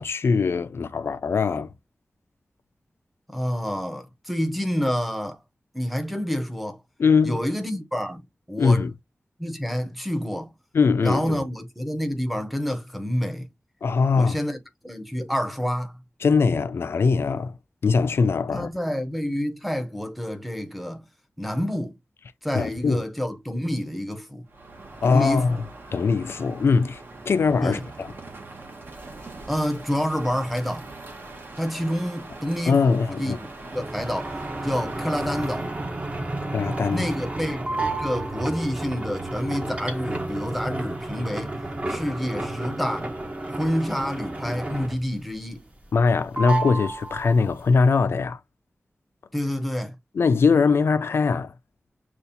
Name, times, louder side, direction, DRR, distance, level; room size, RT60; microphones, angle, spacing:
voice 1, 0.0-1.7 7.0-7.4 8.6-8.9 10.7-11.4 13.8-14.4 16.2-17.5 17.8-18.7 22.5-23.0 25.0-25.6 25.9-27.0 27.3-28.1 32.7-33.4 36.4-37.1 45.9-48.4 50.1-51.5, left 4 dB, 75° left, 0.4 m, -21 dB
voice 2, 3.3-5.4 5.7-6.8 7.2-8.9 9.4-10.5 11.0-13.5 14.1-16.0 18.5-21.1 21.4-22.0 22.4-24.5 25.0-25.6 27.6-27.8 29.5-30.9 31.6-34.3 34.6-35.7 36.9-41.6 41.9-43.1 43.5-45.6 49.3-49.9, equal, ahead, 0.7 m, -28 dB
Crow, 24.5-35.9, right 2 dB, 55° right, 1.2 m, -42 dB
sound 1, 33.7-45.2 45.5-46.1 46.3-47.7, right 2 dB, 30° right, 0.9 m, -31 dB
6.7 x 2.4 x 2.7 m
wide cardioid pair, 115°, 4 cm